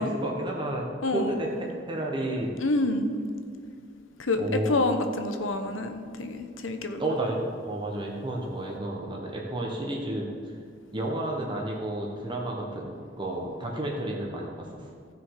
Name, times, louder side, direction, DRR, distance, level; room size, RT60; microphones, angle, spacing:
voice 1, 0.0-0.8 1.1-2.5 4.4-4.7 7.0-10.3 10.9-14.8, right 1 dB, 25° right, -2 dB, 1.2 m, -31 dB
voice 2, 1.0-1.4 2.6-3.1 4.2-7.0, left 2 dB, 85° left, 7 dB, 1.0 m, -27 dB
15.0 x 6.3 x 4.8 m, 2.3 s
head